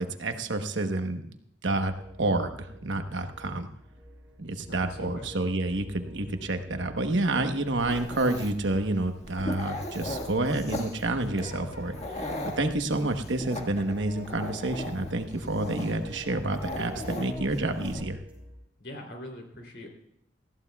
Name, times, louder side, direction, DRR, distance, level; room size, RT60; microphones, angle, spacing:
voice 1, 0.0-1.3 1.6-1.9 2.2-3.7 4.4-12.3 12.6-18.2, right 2 dB, 90° right, 7 dB, 1.1 m, -29 dB
sound 1, 1.7-18.6, equal, 10° right, 2.8 m, -48 dB
voice 2, 4.6-5.3 18.8-19.9, left 1 dB, 65° left, 3 dB, 3.2 m, -42 dB
Dog, 7.8-18.0, left 1 dB, 35° left, 1.7 m, -38 dB
19.0 x 14.5 x 2.3 m, 0.76 s
head